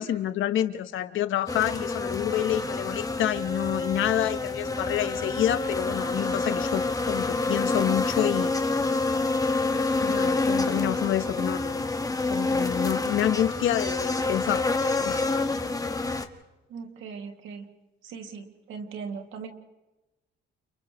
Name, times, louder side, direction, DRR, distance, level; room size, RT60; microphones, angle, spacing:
voice 1, 0.0-8.5 10.0-11.9 12.3-14.7 15.0-15.3, left 11 dB, 80° left, 11 dB, 1.2 m, -28 dB
sound 1, 1.5-16.3, left 3 dB, 20° left, 1.5 m, -27 dB
voice 2, 16.7-17.7 18.0-19.5, right 5 dB, 85° right, 4 dB, 2.5 m, -39 dB
29.5 x 29.5 x 3.2 m, 1.0 s
cardioid pair, 90°, 20 cm